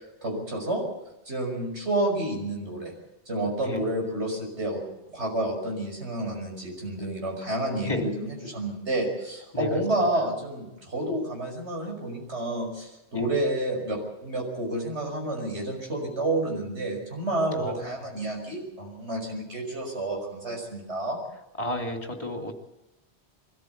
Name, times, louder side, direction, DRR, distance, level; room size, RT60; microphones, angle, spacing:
voice 1, 0.2-0.8 1.3-2.9 3.3-4.8 5.1-21.2, right 1 dB, 80° right, 1 dB, 6.3 m, -29 dB
voice 2, 21.6-22.5, left 1 dB, 30° left, 3 dB, 3.2 m, -31 dB
23.0 x 14.5 x 8.1 m, 0.94 s
omnidirectional pair, 1.1 m